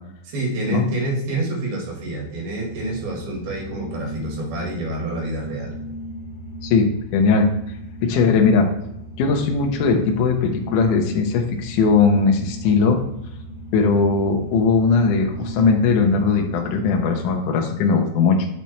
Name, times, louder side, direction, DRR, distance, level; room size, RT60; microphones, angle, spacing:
voice 1, 0.3-5.8, right 2 dB, 85° right, -1 dB, 3.7 m, -27 dB
sound 1, 2.6-17.4, equal, 35° left, 2.1 m, -36 dB
voice 2, 6.6-7.5 8.0-8.7 9.2-13.0 13.7-18.5, left 4 dB, 70° left, 2 dB, 2.1 m, -19 dB
7.0 x 5.8 x 3.1 m, 0.80 s
omnidirectional pair, 4.3 m